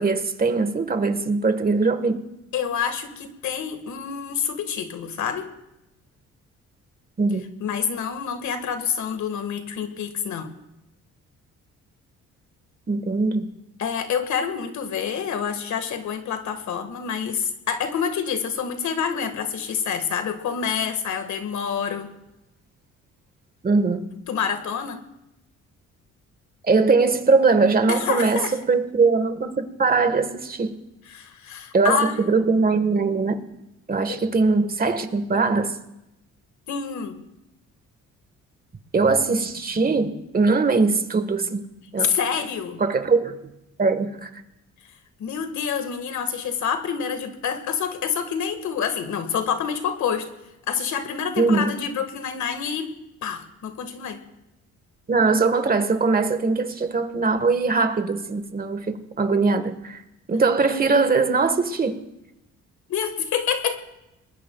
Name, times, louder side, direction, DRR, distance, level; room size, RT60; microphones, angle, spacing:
voice 1, 0.0-2.2 7.2-7.4 12.9-13.5 23.6-24.0 26.7-30.8 31.7-33.3 33.9-35.8 38.9-41.6 41.9-42.1 42.8-43.4 43.8-44.3 51.4-51.7 55.1-60.0 60.3-62.0, right 4 dB, 30° right, 1.5 m, -21 dB
voice 2, 2.5-5.5 7.6-10.5 13.8-22.1 24.3-25.0 27.9-28.5 31.1-32.3 34.1-34.2 36.7-37.2 42.0-42.8 45.2-50.3 50.7-52.9 53.2-54.2 62.9-63.8, left 7 dB, 70° left, 1.8 m, -27 dB
28.0 x 20.5 x 2.4 m
cardioid pair, 90°, 30 cm